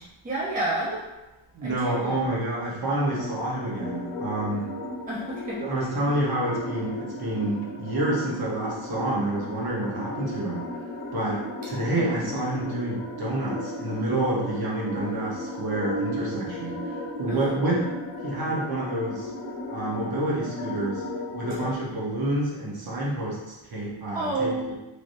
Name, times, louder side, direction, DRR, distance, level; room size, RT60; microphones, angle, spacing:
voice 1, 0.2-1.0 1.6-2.2 5.1-5.6 12.0-12.3 17.3-17.5 24.1-24.8, right 2 dB, 15° right, -7 dB, 0.7 m, -30 dB
voice 2, 1.5-4.7 5.6-10.7 11.1-17.9 18.2-19.3 19.7-21.0 21.3-24.8, right 1 dB, 45° right, -5 dB, 1.1 m, -28 dB
sound 1, 3.1-21.7, left 1 dB, 70° left, 0.8 m, -35 dB
3.3 x 2.8 x 2.6 m, 0.99 s
cardioid pair, 125°, 50 cm